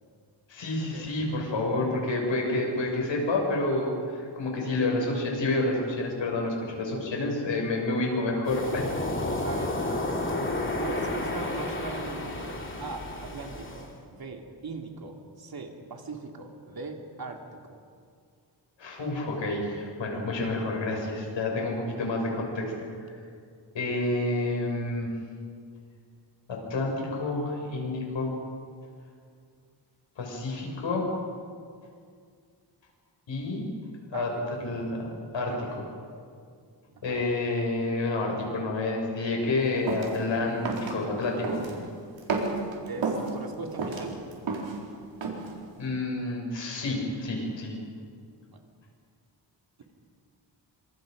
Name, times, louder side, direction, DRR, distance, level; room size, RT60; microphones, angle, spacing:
voice 1, 0.5-8.9 18.8-22.9 23.7-25.1 26.5-28.4 30.2-31.1 33.3-33.6 34.1-34.3 34.6-35.5 37.0-41.6 45.8-47.7, left 2 dB, 80° left, 0 dB, 6.9 m, -29 dB
Waves surf, 8.5-13.9, left 2 dB, 25° left, 2.9 m, -31 dB
voice 2, 9.4-10.1 10.8-17.8 34.1-34.5 35.5-35.6 37.0-37.2 42.9-44.2 48.5-48.6, right 3 dB, 55° right, 2 dB, 2.9 m, -40 dB
sound 1, 39.9-40.2 40.6-40.9 41.4-41.8 42.2-43.3 43.7-44.8 45.2-45.5, right 4 dB, 90° right, 4.3 m, -30 dB
28.0 x 26.5 x 5.4 m, 2.2 s
wide cardioid pair, 145°, 44 cm